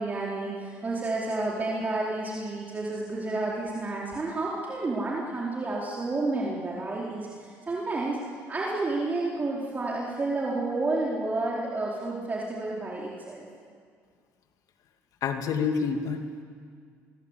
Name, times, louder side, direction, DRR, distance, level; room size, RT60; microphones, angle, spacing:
voice 1, 0.0-8.2 8.5-13.5, right 2 dB, 25° right, -4 dB, 4.5 m, -30 dB
voice 2, 15.2-16.4, left 5 dB, 65° left, 6 dB, 2.5 m, -28 dB
25.0 x 22.0 x 8.4 m, 2.1 s
supercardioid pair, 90°, 6 cm